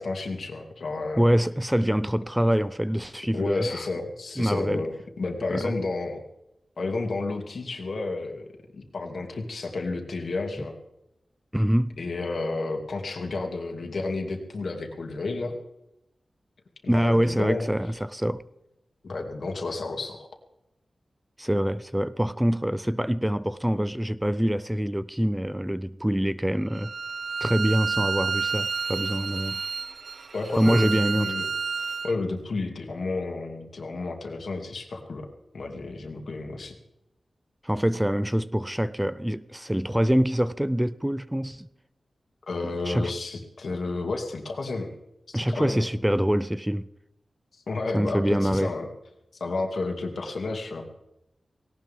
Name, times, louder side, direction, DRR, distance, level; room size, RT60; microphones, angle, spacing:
voice 1, 0.0-1.2 3.3-6.2 6.8-8.5 8.7-10.7 12.0-15.6 16.8-17.7 19.0-20.3 30.3-31.5 32.0-35.3 35.5-36.8 42.5-44.9 45.3-45.8 47.7-48.9 49.4-50.9, left 3 dB, 70° left, 2.6 m, -31 dB
voice 2, 1.2-3.8 4.4-4.8 5.5-5.7 10.6-10.7 11.5-12.0 16.9-18.4 21.4-26.9 27.4-29.6 30.6-31.3 37.6-41.7 42.9-43.1 45.3-46.9 47.9-48.7, equal, 5° right, 0.4 m, -25 dB
Bowed string instrument, 26.7-32.1, right 5 dB, 75° right, 0.6 m, -30 dB
18.0 x 18.0 x 3.6 m
wide cardioid pair, 115°, 0 cm